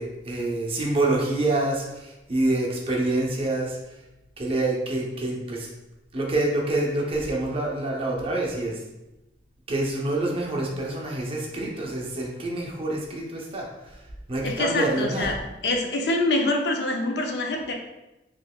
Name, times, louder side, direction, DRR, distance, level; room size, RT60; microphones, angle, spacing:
voice 1, 0.0-3.8 4.4-5.7 6.1-8.8 9.7-13.7 14.3-15.3, right 2 dB, 30° right, -2 dB, 0.6 m, -26 dB
voice 2, 14.4-15.4 15.6-17.7, left 2 dB, 65° left, 2 dB, 0.5 m, -25 dB
3.9 x 3.0 x 2.2 m, 0.98 s
head